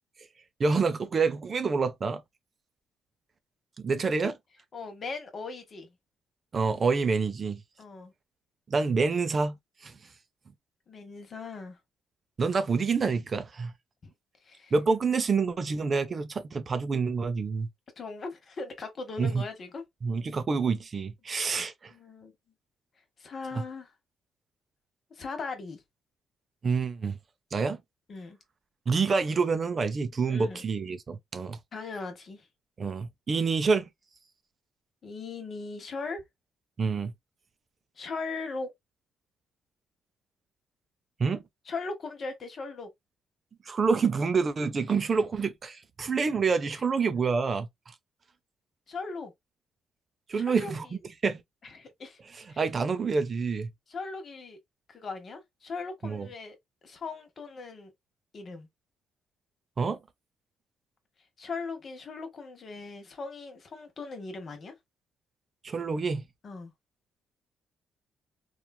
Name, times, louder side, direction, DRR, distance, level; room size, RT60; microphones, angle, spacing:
voice 1, 0.6-2.2 3.8-4.4 6.5-7.6 8.7-10.0 12.4-13.7 14.7-17.7 19.2-19.4 20.0-21.9 23.5-23.6 26.6-27.2 27.5-27.8 28.9-31.6 32.8-33.9 36.8-37.1 41.2-41.4 43.6-47.9 50.3-51.4 52.3-53.7 56.0-56.3 59.8-60.0 65.6-66.3, right 4 dB, 40° right, 0.5 m, -27 dB
voice 2, 4.7-5.9 7.8-8.1 10.9-11.8 14.0-14.1 14.4-14.7 18.0-19.8 21.9-22.3 23.2-23.9 25.1-25.8 28.1-28.4 30.3-30.6 31.7-32.5 35.0-36.2 38.0-38.7 41.7-42.9 48.9-49.3 50.3-50.7 51.8-52.2 52.5-52.6 53.9-54.6 54.9-56.5 56.8-57.9 58.3-58.7 61.4-64.7 66.4-66.7, left 4 dB, 45° left, 0.9 m, -39 dB
3.0 x 2.4 x 2.2 m
cardioid pair, 90°, 0 cm